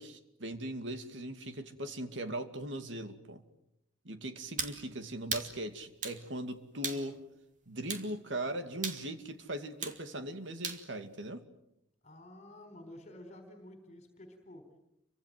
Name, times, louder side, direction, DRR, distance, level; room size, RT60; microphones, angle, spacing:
voice 1, 0.0-3.4 4.0-7.2 7.7-11.5, right 1 dB, 70° right, 8 dB, 2.4 m, -39 dB
sound 1, 4.6-4.8 5.3-5.5 6.0-6.2 6.8-7.0 7.9-8.1 8.8-9.0 9.8-10.0 10.6-10.8, right 6 dB, 40° right, 2.6 m, -36 dB
voice 2, 6.8-7.2 12.0-14.7, left 1 dB, 35° left, 6 dB, 4.1 m, -51 dB
29.5 x 25.0 x 7.7 m, 0.82 s
head